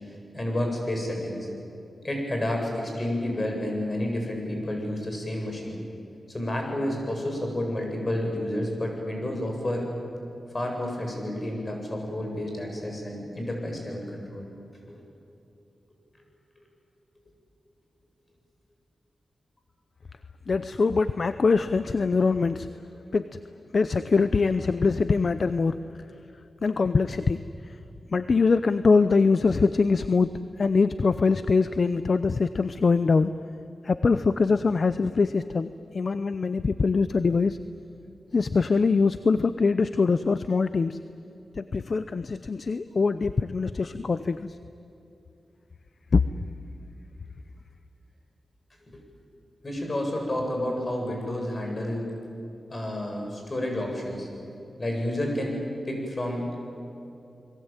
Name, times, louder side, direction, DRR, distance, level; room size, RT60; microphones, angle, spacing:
voice 1, 0.3-1.5 2.0-5.8 6.3-9.9 10.5-14.5 14.9-15.0 49.6-52.1 52.7-54.3 54.8-55.6 55.9-56.6, left 1 dB, 35° left, 1 dB, 8.0 m, -30 dB
voice 2, 20.5-22.7 23.1-23.4 23.7-25.9 26.6-27.8 28.1-33.3 33.8-37.6 38.3-41.0 41.6-44.6 46.1-46.2, left 4 dB, 55° left, 12 dB, 0.7 m, -23 dB
29.5 x 21.5 x 9.0 m, 2.8 s
wide cardioid pair, 75°, 0 cm